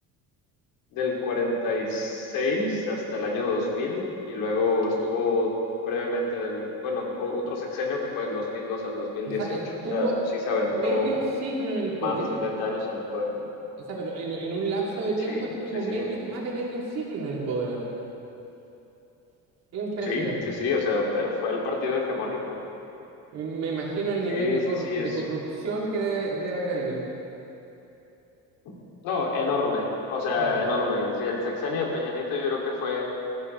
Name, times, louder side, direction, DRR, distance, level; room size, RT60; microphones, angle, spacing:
voice 1, 0.9-5.5 5.9-9.6 9.9-10.1 10.5-11.2 11.9-13.5 15.3-15.4 15.7-16.1 20.0-22.6 24.3-25.2 29.0-33.0, left 3 dB, 90° left, -2 dB, 2.8 m, -27 dB
voice 2, 9.3-10.2 10.7-12.4 13.8-17.9 19.7-20.5 23.3-27.0 30.4-30.6, right 3 dB, 50° right, -4 dB, 3.0 m, -30 dB
19.0 x 14.5 x 3.4 m, 2.9 s
cardioid pair, 180°, 33 cm